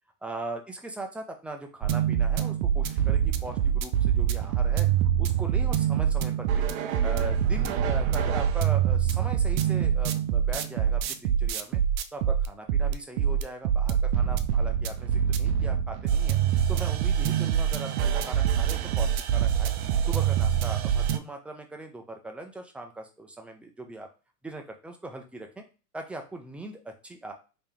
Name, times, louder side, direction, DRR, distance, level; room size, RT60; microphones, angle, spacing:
voice 1, 0.2-4.9 5.2-6.7 7.0-11.8 12.1-16.4 16.7-19.7 20.0-24.1 24.4-25.6 25.9-27.3, right 2 dB, 5° right, 3 dB, 0.4 m, -40 dB
sound 1, 1.8-21.2, right 9 dB, 50° right, 0.6 m, -25 dB
3.4 x 2.9 x 3.3 m, 0.33 s
hypercardioid pair, 100°, 46 cm